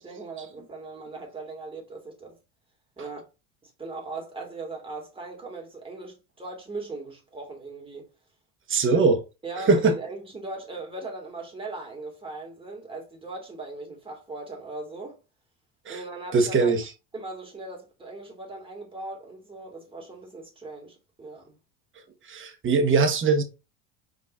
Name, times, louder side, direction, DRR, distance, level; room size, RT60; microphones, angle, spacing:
voice 1, 0.0-2.4 3.0-3.2 3.6-8.1 8.8-9.0 9.4-15.2 15.9-16.7 17.1-21.6, right 3 dB, 15° right, 2.2 m, -39 dB
voice 2, 8.7-9.2 9.7-10.0 15.9-16.0 16.3-16.8 22.3-23.4, right 4 dB, 30° right, 1.4 m, -21 dB
5.3 x 3.9 x 2.6 m
supercardioid pair, 105°, 41 cm